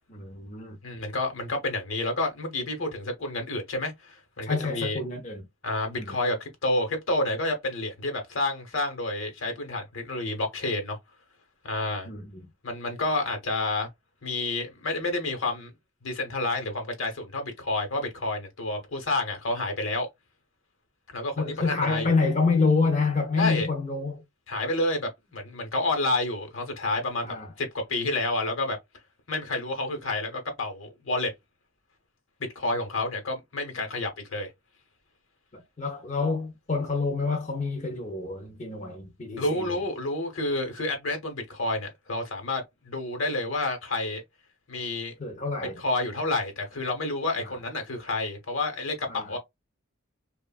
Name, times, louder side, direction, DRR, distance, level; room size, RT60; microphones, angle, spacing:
voice 1, 0.1-0.8 4.4-5.5 6.0-6.2 12.0-12.5 21.4-24.2 27.2-27.5 35.5-39.8 45.2-45.8 47.4-47.5 49.1-49.3, left 4 dB, 35° left, 0.6 m, -28 dB
voice 2, 0.8-5.0 5.6-11.0 11.6-12.1 12.6-13.9 14.2-15.7 16.0-20.1 21.1-22.1 23.4-23.7 24.5-28.8 29.3-31.3 32.5-34.5 39.4-44.2 44.7-45.1 45.8-49.4, left 2 dB, 70° left, 1.0 m, -29 dB
3.2 x 2.3 x 2.3 m
head